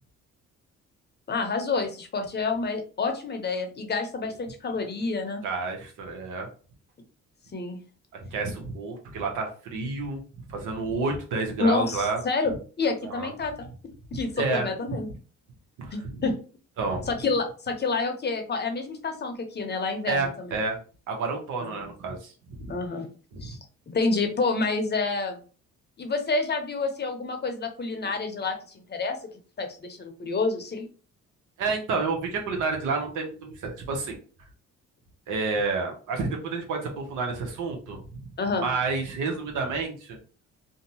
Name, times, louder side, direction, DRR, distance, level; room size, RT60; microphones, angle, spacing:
voice 1, 1.3-5.4 7.5-7.8 11.6-13.7 14.1-15.1 15.9-16.3 17.1-20.5 21.6-21.7 22.7-23.1 23.4-23.6 23.9-25.4 26.0-29.2 29.6-30.9 38.4-38.7, left 3 dB, 35° left, 5 dB, 0.7 m, -28 dB
voice 2, 5.4-6.5 8.3-10.2 10.5-12.2 13.0-13.3 14.4-14.7 15.8-16.2 16.8-17.1 20.1-20.8 21.1-22.7 23.3-23.5 31.6-34.2 35.3-38.2 38.5-40.2, right 4 dB, 85° right, 2 dB, 0.9 m, -30 dB
2.7 x 2.2 x 2.8 m, 0.37 s
cardioid pair, 90°, 30 cm